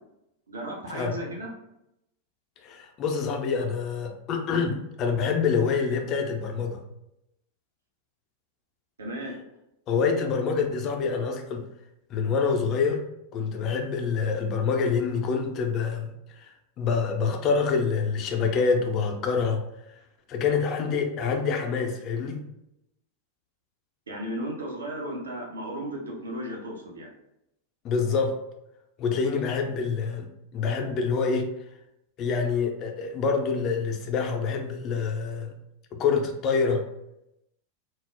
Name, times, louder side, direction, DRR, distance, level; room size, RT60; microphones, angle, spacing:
voice 1, 0.5-1.5 9.0-9.4 24.1-27.1, right 1 dB, 70° right, -1 dB, 0.6 m, -35 dB
voice 2, 2.6-6.8 9.9-11.6 12.1-13.0 13.3-16.1 16.4-16.5 16.8-19.6 20.3-22.4 27.8-28.3 29.0-30.3 30.5-31.5 32.2-35.5 36.0-36.8, left 5 dB, 35° left, 3 dB, 0.4 m, -26 dB
2.2 x 2.0 x 3.3 m, 0.84 s
figure-of-eight pair, 90°, 0 cm